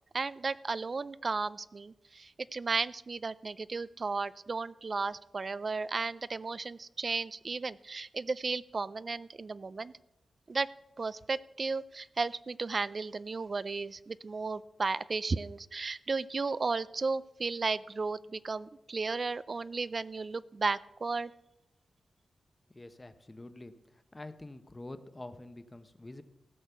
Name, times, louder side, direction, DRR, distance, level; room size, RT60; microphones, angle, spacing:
voice 1, 0.1-9.9 10.5-10.7 11.0-21.3, right 4 dB, 40° right, 18 dB, 0.3 m, -34 dB
voice 2, 22.7-23.7 24.1-26.2, left 2 dB, 20° left, 10 dB, 0.9 m, -46 dB
15.5 x 6.4 x 7.0 m, 0.91 s
wide cardioid pair, 105°, 0 cm